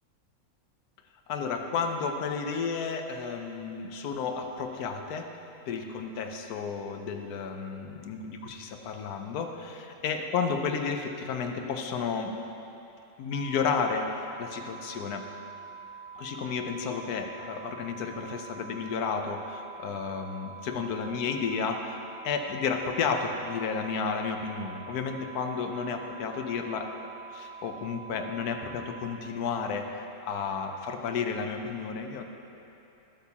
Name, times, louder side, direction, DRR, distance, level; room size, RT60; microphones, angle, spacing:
voice 1, 1.3-5.3 5.7-12.3 13.2-15.3 16.2-22.0 22.2-26.9 27.3-32.2, left 5 dB, 85° left, 5 dB, 1.2 m, -32 dB
sound 1, 13.3-29.2, right 6 dB, 60° right, 0.8 m, -45 dB
14.0 x 8.1 x 2.9 m, 2.9 s
omnidirectional pair, 1.6 m